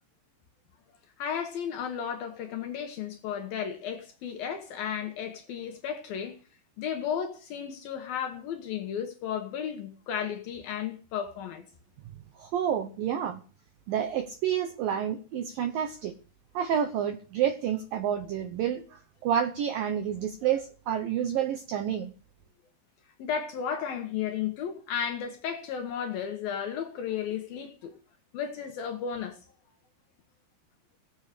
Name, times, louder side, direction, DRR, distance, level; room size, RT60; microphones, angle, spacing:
voice 1, 1.2-6.4 6.8-11.6 23.2-27.9 28.3-29.4, left 8 dB, 65° left, 2.5 m, -34 dB
voice 2, 12.4-13.4 13.9-16.2 16.5-22.1, right 9 dB, 85° right, 2.0 m, -29 dB
17.5 x 8.1 x 6.6 m
omnidirectional pair, 5.5 m